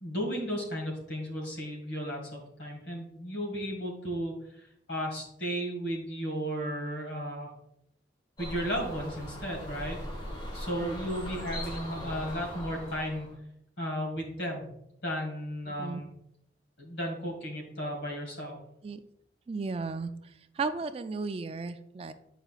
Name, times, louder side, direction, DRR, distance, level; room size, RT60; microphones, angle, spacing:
voice 1, 0.0-7.5 8.4-10.0 10.5-13.3 13.8-14.7 15.0-16.1 16.8-18.6, equal, 85° left, 1 dB, 2.0 m, -34 dB
sound 1, 8.4-13.4, equal, 25° left, 1.2 m, -40 dB
voice 2, 15.7-16.0 18.8-19.0 19.5-22.1, right 4 dB, 35° right, 10 dB, 0.3 m, -35 dB
8.0 x 5.0 x 2.4 m, 0.77 s
head